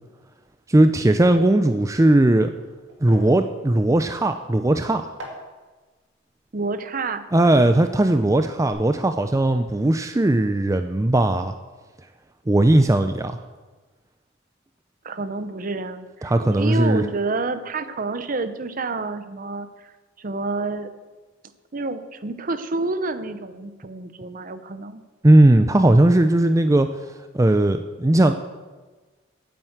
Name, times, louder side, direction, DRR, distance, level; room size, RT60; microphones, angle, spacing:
voice 1, 0.7-2.5 3.0-5.1 7.3-11.5 12.5-13.4 16.2-17.0 25.2-26.9 27.3-28.3, right 1 dB, 15° right, 8 dB, 0.4 m, -18 dB
sound 1, 2.9-8.2 8.4-8.7, equal, 70° right, 2.7 m, -46 dB
voice 2, 6.5-7.2 15.0-19.9 20.2-20.9 21.7-25.0, right 3 dB, 45° right, 12 dB, 0.8 m, -29 dB
9.2 x 9.1 x 7.9 m, 1.3 s
head